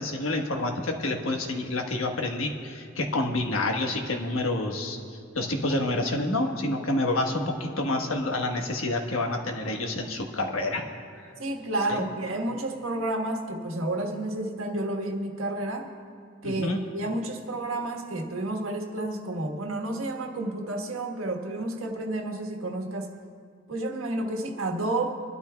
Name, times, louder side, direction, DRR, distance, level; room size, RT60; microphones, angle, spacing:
voice 1, 0.0-5.0 5.3-10.8 11.2-11.3 11.9-12.1 16.4-16.8, left 2 dB, 80° left, 2 dB, 1.4 m, -28 dB
voice 2, 11.4-15.9 16.4-23.1 23.7-25.2, right 2 dB, 85° right, 2 dB, 1.4 m, -31 dB
25.0 x 12.0 x 2.3 m, 2.2 s
head